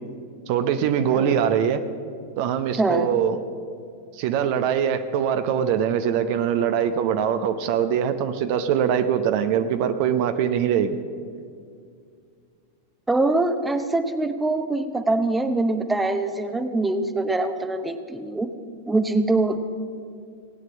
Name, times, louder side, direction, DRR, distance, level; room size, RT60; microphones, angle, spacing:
voice 1, 0.5-1.8 2.4-3.4 4.1-11.0, right 8 dB, 45° right, 9 dB, 0.8 m, -22 dB
voice 2, 1.1-1.4 2.8-3.1 13.1-18.5 18.9-19.6, right 2 dB, 10° right, 9 dB, 0.9 m, -23 dB
18.0 x 9.3 x 7.3 m, 2.3 s
figure-of-eight pair, 90°, 0 cm